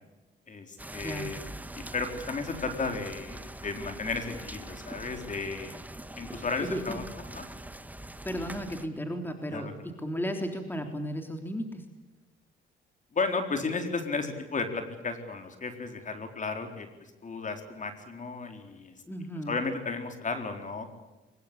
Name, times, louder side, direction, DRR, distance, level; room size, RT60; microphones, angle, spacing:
voice 1, 0.5-1.4 1.8-5.7 6.2-7.0 7.3-7.4 9.5-9.7 13.1-16.9 17.2-18.9 19.5-20.9, left 4 dB, 40° left, 6 dB, 4.2 m, -34 dB
sound 1, 0.8-8.9, right 1 dB, 10° right, 1.5 m, -43 dB
voice 2, 6.6-7.0 8.2-11.8 19.1-19.6, equal, 10° left, 5 dB, 3.4 m, -34 dB
23.5 x 21.0 x 8.4 m, 1.1 s
cardioid pair, 90°, 20 cm